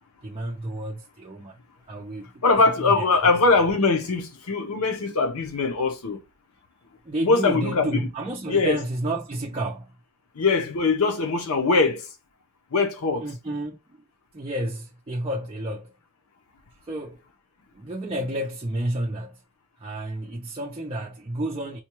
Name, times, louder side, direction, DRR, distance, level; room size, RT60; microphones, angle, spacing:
voice 1, 0.2-1.6 1.9-3.0 7.0-9.9 13.2-14.0 14.3-15.9 16.8-17.2 17.7-19.4 19.8-21.8, right 1 dB, 25° right, 0.5 m, -31 dB
voice 2, 2.4-6.2 7.2-8.1 8.5-8.8 10.4-12.0 12.7-13.2, left 3 dB, 80° left, 0.7 m, -22 dB
4.2 x 2.2 x 3.0 m
head